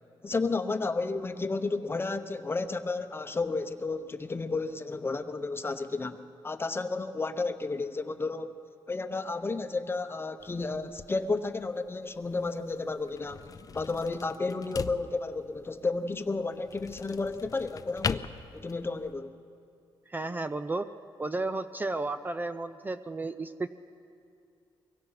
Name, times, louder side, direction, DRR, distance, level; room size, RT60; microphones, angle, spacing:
voice 1, 0.2-8.5 8.9-13.5 13.7-18.2 18.5-19.4, left 3 dB, 25° left, 8 dB, 0.9 m, -32 dB
sound 1, 10.4-19.1, left 6 dB, 40° left, 0.6 m, -41 dB
voice 2, 20.1-20.9 21.2-23.7, right 2 dB, 20° right, 10 dB, 0.5 m, -33 dB
23.5 x 22.0 x 5.9 m, 2.5 s
cardioid pair, 110°, 9 cm